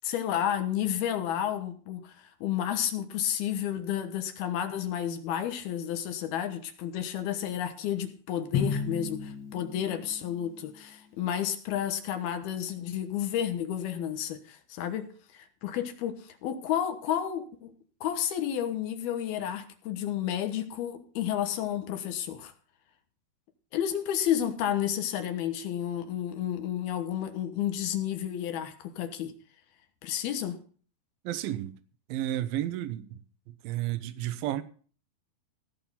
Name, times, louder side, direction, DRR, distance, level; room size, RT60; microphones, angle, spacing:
voice 1, 0.0-17.7 18.0-22.5 23.7-29.3 30.0-30.6, left 10 dB, 70° left, 3.0 m, -31 dB
Drum, 8.5-10.7, left 6 dB, 40° left, 1.6 m, -33 dB
voice 2, 31.2-31.7 32.1-33.2 33.6-34.6, right 13 dB, 70° right, 2.5 m, -32 dB
16.5 x 6.1 x 7.3 m
omnidirectional pair, 4.7 m